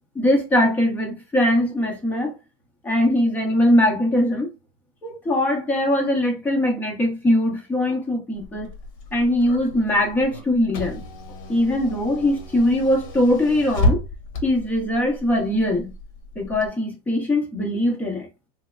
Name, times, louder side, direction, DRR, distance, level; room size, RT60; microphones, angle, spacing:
voice 1, 0.1-2.3 2.8-4.5 5.0-8.7 9.1-11.0 11.5-14.0 14.4-15.9 16.4-18.3, left 1 dB, 10° left, 0.6 m, -21 dB
Car / Engine, 8.3-16.7, left 1 dB, 55° left, 1.0 m, -31 dB
3.3 x 3.1 x 2.2 m
supercardioid pair, 180°, 20 cm